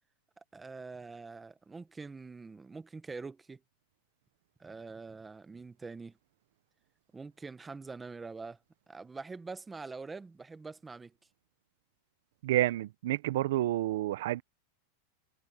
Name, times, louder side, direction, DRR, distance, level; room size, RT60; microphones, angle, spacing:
voice 1, 0.5-3.6 4.6-6.2 7.1-8.6 8.9-11.1, right 4 dB, 10° right, 1.0 m, -44 dB
voice 2, 12.4-14.4, right 14 dB, 70° right, 0.6 m, -29 dB
supercardioid pair, 160°, 0 cm